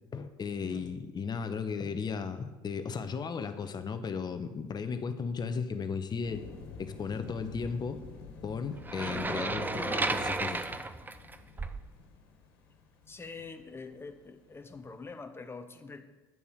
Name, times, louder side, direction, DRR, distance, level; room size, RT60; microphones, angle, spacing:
voice 1, 0.1-6.4 6.8-8.0 8.4-10.6, left 5 dB, 35° left, 9 dB, 1.2 m, -35 dB
voice 2, 0.6-0.9 13.1-16.0, left 4 dB, 20° left, 7 dB, 1.3 m, -45 dB
sound 1, 6.2-15.1, left 4 dB, 85° left, 1.8 m, -49 dB
sound 2, 8.9-11.9, right 3 dB, 15° right, 0.7 m, -33 dB
10.5 x 7.1 x 6.5 m, 1.1 s
hypercardioid pair, 70°, 12 cm